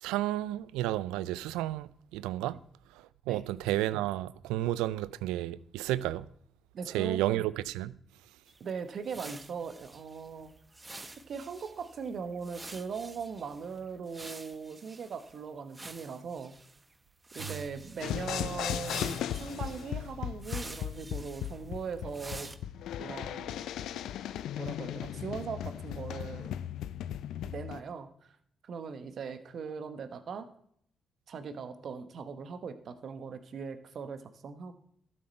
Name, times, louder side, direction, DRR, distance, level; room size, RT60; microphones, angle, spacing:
voice 1, 0.0-2.6 3.3-6.3 6.9-7.9, right 15 dB, 85° right, 0.3 m, -32 dB
voice 2, 6.7-7.4 8.6-10.5 11.3-16.5 17.3-22.5 23.0-23.6 24.6-26.5 27.4-28.1 28.6-30.5 31.3-34.7, right 5 dB, 65° right, 1.1 m, -40 dB
sound 1, 8.5-15.4 15.7-16.8 17.2-18.4 18.8-22.6, right 2 dB, 25° right, 1.0 m, -48 dB
sound 2, 18.0-27.8, left 10 dB, 75° left, 0.4 m, -37 dB
12.5 x 7.8 x 4.4 m
hypercardioid pair, 45°, 0 cm